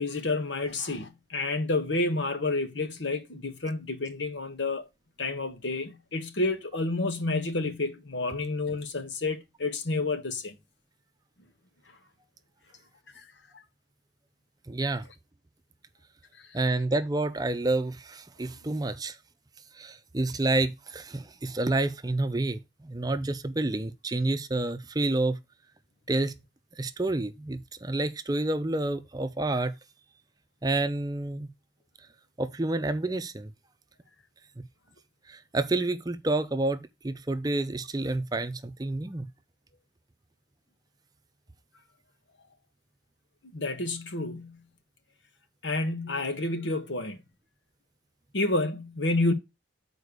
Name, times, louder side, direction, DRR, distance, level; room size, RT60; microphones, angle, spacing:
voice 1, 0.0-4.9 5.2-10.5 13.1-13.2 43.5-44.6 45.6-47.2 48.3-49.3, left 2 dB, 90° left, 1.5 m, -29 dB
voice 2, 14.7-15.1 16.5-19.2 19.8-25.4 26.1-26.3 26.8-29.7 30.6-31.5 32.4-33.5 35.3-39.3, right 2 dB, 20° right, 0.6 m, -29 dB
6.6 x 4.5 x 6.7 m
head